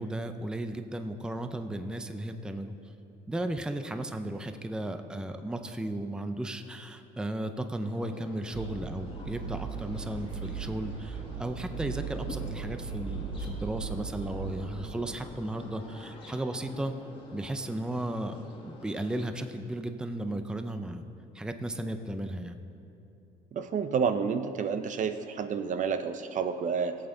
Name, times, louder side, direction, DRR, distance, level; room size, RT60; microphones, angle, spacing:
voice 1, 0.0-2.7 3.3-16.9 17.3-18.3 18.6-21.0 21.3-22.6, right 1 dB, 5° right, 8 dB, 0.5 m, -35 dB
sound 1, 7.8-19.3, left 2 dB, 30° left, 1.8 m, -47 dB
sound 2, 8.5-14.9, right 6 dB, 90° right, 1.0 m, -38 dB
voice 2, 23.5-27.0, right 6 dB, 50° right, 9 dB, 0.6 m, -29 dB
18.5 x 8.1 x 3.9 m, 2.8 s
cardioid pair, 110°, 17 cm